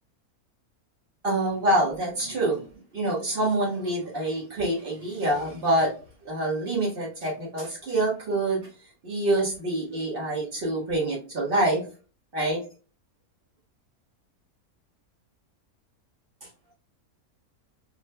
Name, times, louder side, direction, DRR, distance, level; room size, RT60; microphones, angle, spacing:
voice 1, 1.2-2.6 2.9-5.9 6.3-8.7 9.0-11.8 12.3-12.6, right 1 dB, 40° right, -4 dB, 1.8 m, -26 dB
3.8 x 3.7 x 2.2 m, 0.36 s
omnidirectional pair, 1.5 m